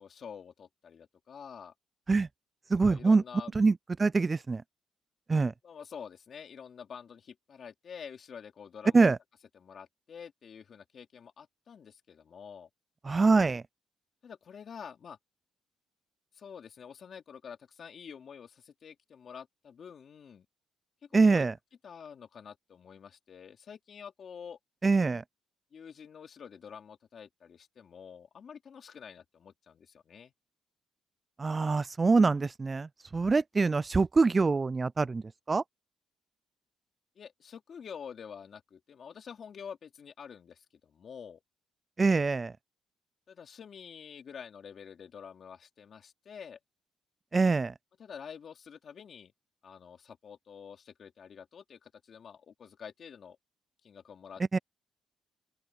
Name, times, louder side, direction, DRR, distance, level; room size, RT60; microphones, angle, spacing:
voice 1, 0.0-1.7 2.9-3.5 5.6-9.0 9.5-12.7 14.2-15.2 16.3-20.5 21.1-21.5 21.8-24.6 25.7-30.3 37.2-41.4 43.3-46.6 48.0-49.3 49.6-53.4 53.8-54.6, left 7 dB, 55° left, 2.8 m, -48 dB
voice 2, 2.7-3.2 3.5-4.6 5.3-5.5 8.9-9.2 13.0-13.6 21.1-21.5 24.8-25.2 31.4-35.6 42.0-42.6 47.3-47.7 54.5-54.6, right 4 dB, 30° right, 0.3 m, -25 dB
open air
cardioid pair, 90°, 0 cm